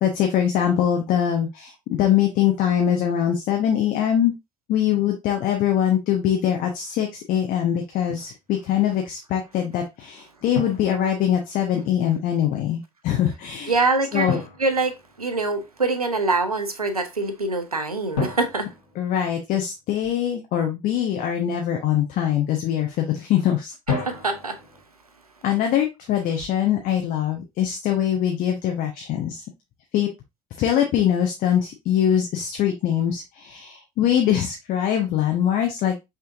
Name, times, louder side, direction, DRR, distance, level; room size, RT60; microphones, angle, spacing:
voice 1, 0.0-4.3 4.7-13.7 14.1-14.4 19.0-23.7 25.4-29.4 29.9-30.1 30.6-35.9, left 10 dB, 50° left, 0.9 m, -23 dB
Drum, 8.1-8.4 10.5-11.7 14.3-15.7 18.2-19.9 23.9-24.8, left 4 dB, 70° left, 1.5 m, -32 dB
voice 2, 13.7-14.3 14.6-18.7 24.0-24.6, right 3 dB, 90° right, 0.6 m, -24 dB
5.5 x 3.7 x 2.5 m
figure-of-eight pair, 55°, 18 cm